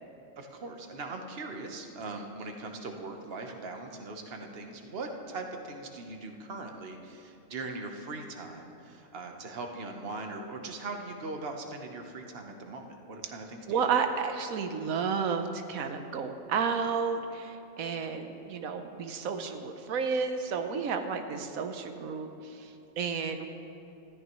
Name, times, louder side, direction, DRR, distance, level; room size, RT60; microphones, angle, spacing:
voice 1, 0.4-13.8, right 3 dB, 50° right, 3 dB, 1.3 m, -40 dB
voice 2, 13.7-23.5, right 6 dB, 90° right, 6 dB, 1.2 m, -32 dB
19.5 x 14.0 x 3.1 m, 2.8 s
omnidirectional pair, 1.4 m